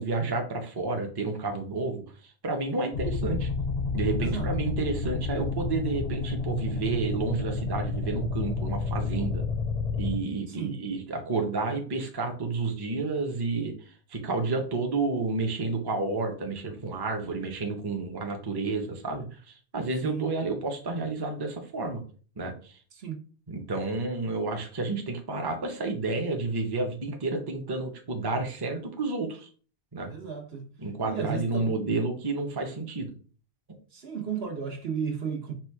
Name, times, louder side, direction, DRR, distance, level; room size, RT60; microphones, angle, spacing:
voice 1, 0.0-3.5 3.9-9.4 10.0-13.7 14.1-22.0 22.4-22.8 23.5-29.5 29.9-30.1 30.8-33.1, right 3 dB, 25° right, 0.6 m, -30 dB
sound 1, 2.9-10.2, left 4 dB, 50° left, 0.5 m, -30 dB
voice 2, 4.2-4.5 10.5-10.9 20.0-20.3 22.9-23.2 30.1-30.8 31.0-32.0 33.9-35.6, right 7 dB, 70° right, 1.2 m, -34 dB
4.3 x 2.4 x 4.5 m
omnidirectional pair, 1.1 m